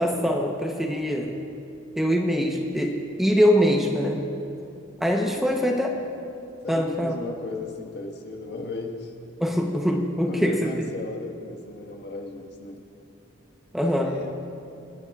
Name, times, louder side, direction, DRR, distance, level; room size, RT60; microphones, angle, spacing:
voice 1, 0.0-1.3 2.0-4.2 5.0-5.9 6.7-7.2 9.4-10.9 13.7-14.1, equal, ahead, 1 dB, 0.8 m, -23 dB
voice 2, 6.6-9.1 10.3-12.8 13.8-14.3, left 2 dB, 55° left, 2 dB, 1.5 m, -36 dB
28.0 x 10.5 x 2.4 m, 2.6 s
head